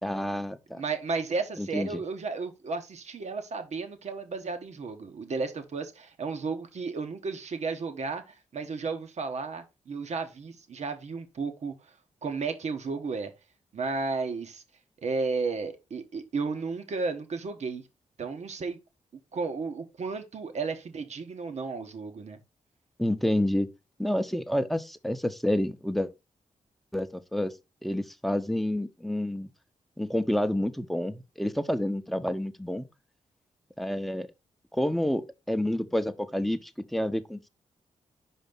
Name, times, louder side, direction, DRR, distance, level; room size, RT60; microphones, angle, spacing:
voice 1, 0.0-0.8 1.6-2.0 23.0-23.7 24.0-26.1 26.9-27.5 27.8-29.5 30.0-32.9 33.8-34.3 34.7-37.5, left 1 dB, ahead, 0.7 m, -29 dB
voice 2, 0.7-11.7 12.2-13.3 13.7-14.6 15.0-17.8 18.2-18.8 19.3-22.4, right 4 dB, 65° right, 1.2 m, -33 dB
5.2 x 4.2 x 5.2 m
cardioid pair, 70°, 13 cm